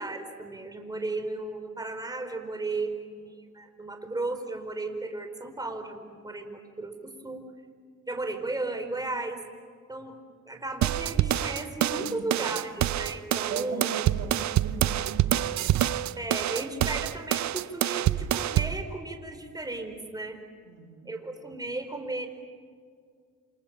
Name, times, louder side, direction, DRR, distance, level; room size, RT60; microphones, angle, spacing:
voice 1, 0.0-7.5 8.0-9.4 9.9-10.1 10.5-13.9 16.2-20.4 21.0-22.3, right 2 dB, 10° right, 5 dB, 4.5 m, -35 dB
sound 1, 10.8-18.8, right 12 dB, 65° right, 0.8 m, -26 dB
voice 2, 11.9-12.5 13.5-15.9 20.6-21.2, right 6 dB, 90° right, 4 dB, 2.8 m, -40 dB
28.5 x 27.5 x 7.4 m, 2.1 s
cardioid pair, 90°, 30 cm